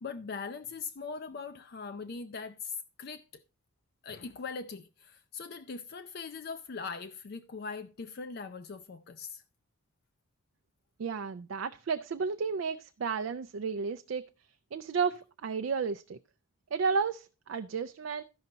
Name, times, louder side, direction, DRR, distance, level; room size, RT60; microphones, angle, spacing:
voice 1, 0.0-3.4 4.0-9.4, left 5 dB, 45° left, 0.4 m, -41 dB
voice 2, 11.0-14.2 14.7-16.2 16.7-18.2, right 5 dB, 60° right, 0.3 m, -32 dB
13.0 x 5.5 x 3.9 m
head